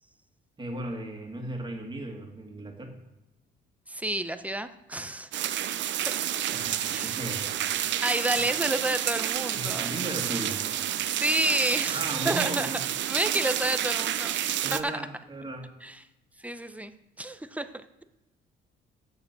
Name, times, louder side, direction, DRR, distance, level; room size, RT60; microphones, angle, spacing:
voice 1, 0.6-2.9 6.5-7.9 9.5-10.6 11.9-12.8 14.6-15.7, right 1 dB, 25° right, 1 dB, 2.2 m, -36 dB
voice 2, 3.9-5.6 6.1-6.2 6.9-7.1 8.0-9.9 11.1-12.7 13.1-14.3 14.7-15.0 15.8-16.0 16.4-17.7, right 1 dB, 5° right, 10 dB, 0.8 m, -30 dB
sound 1, 5.3-14.8, right 11 dB, 70° right, 0.6 m, -29 dB
7.9 x 6.9 x 6.8 m, 0.97 s
cardioid pair, 90°, 20 cm